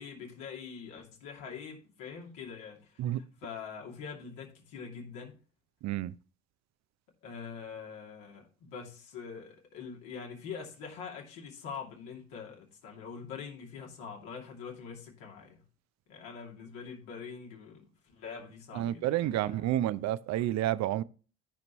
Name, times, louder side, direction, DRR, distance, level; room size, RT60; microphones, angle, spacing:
voice 1, 0.0-5.3 7.2-15.6 16.1-19.6, left 6 dB, 70° left, 2.7 m, -44 dB
voice 2, 5.8-6.1 18.7-21.0, right 13 dB, 55° right, 0.6 m, -30 dB
15.5 x 5.3 x 3.0 m
hypercardioid pair, 55°, 34 cm